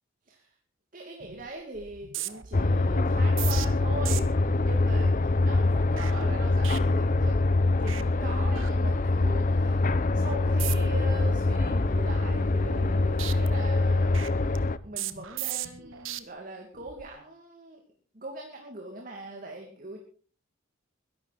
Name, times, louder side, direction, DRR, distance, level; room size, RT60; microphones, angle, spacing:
voice 1, 0.9-4.3 4.6-7.4 7.8-14.3 14.8-17.8 18.1-20.0, right 2 dB, 40° right, 2 dB, 2.5 m, -41 dB
sound 1, 1.2-1.5 1.8-7.5 7.8-8.0 8.3-9.3 9.7-9.9 10.5-11.0 11.4-12.9 13.2-16.2 16.7-17.1, right 11 dB, 75° right, 1.1 m, -39 dB
sound 2, 2.5-14.8, left 2 dB, 40° left, 0.6 m, -24 dB
22.0 x 11.5 x 4.2 m, 0.42 s
head